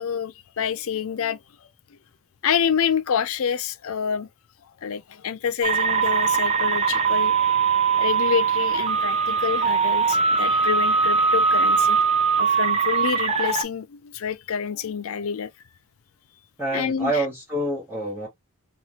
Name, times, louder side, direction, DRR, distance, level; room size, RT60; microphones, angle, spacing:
voice 1, 0.0-1.4 2.4-4.3 4.8-7.4 8.0-12.0 12.4-15.5 16.7-17.3, left 7 dB, 70° left, 0.4 m, -27 dB
sound 1, 5.6-13.6, right 5 dB, 25° right, 0.4 m, -21 dB
voice 2, 16.6-18.3, right 1 dB, 10° right, 1.0 m, -27 dB
2.5 x 2.5 x 2.9 m
head